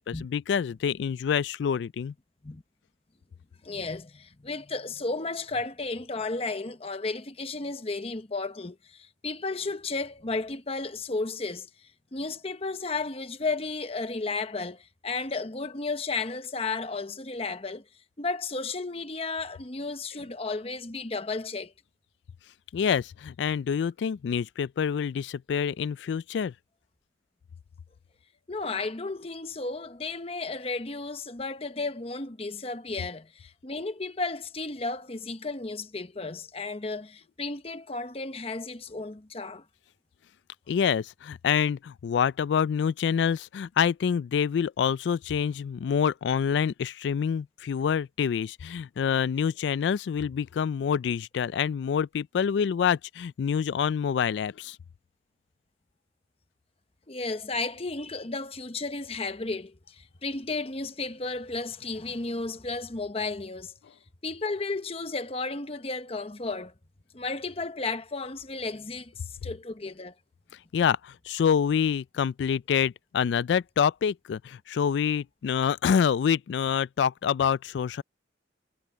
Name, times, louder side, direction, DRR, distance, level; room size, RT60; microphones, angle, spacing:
voice 1, 0.0-2.1 22.7-26.5 40.7-54.8 70.7-78.0, left 7 dB, 75° left, 0.3 m, -26 dB
voice 2, 3.6-11.7 12.1-17.8 18.2-21.7 28.5-39.6 57.1-63.7 64.2-66.7 67.1-70.1, left 3 dB, 35° left, 1.0 m, -33 dB
head